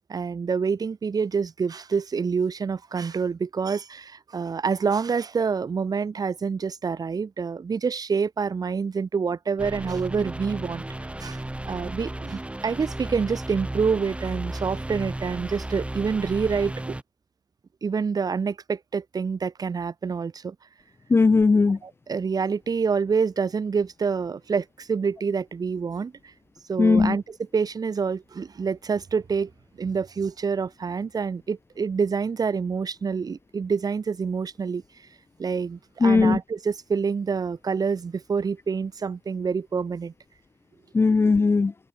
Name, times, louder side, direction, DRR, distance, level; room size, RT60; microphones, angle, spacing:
voice 1, 0.1-10.8 11.2-16.9 17.8-20.6 21.8-26.3 26.7-29.5 29.8-34.8 35.4-40.1, right 5 dB, 65° right, 0.7 m, -27 dB
sound 1, 9.6-17.0, right 1 dB, 15° right, 3.6 m, -34 dB
voice 2, 21.1-21.8 26.8-27.2 36.0-36.4 40.9-41.7, left 4 dB, 35° left, 0.3 m, -18 dB
wide cardioid pair, 90°, 7 cm